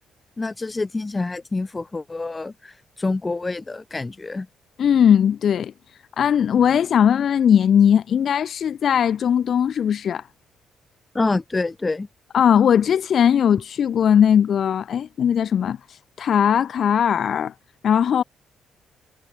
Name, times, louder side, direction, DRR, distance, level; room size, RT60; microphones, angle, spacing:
voice 1, 0.4-4.5 11.1-12.1, left 3 dB, 20° left, 0.8 m, -27 dB
voice 2, 4.8-5.7 6.2-10.2 12.3-17.5 17.8-18.2, left 8 dB, 60° left, 0.4 m, -19 dB
cardioid pair, 90°, 0 cm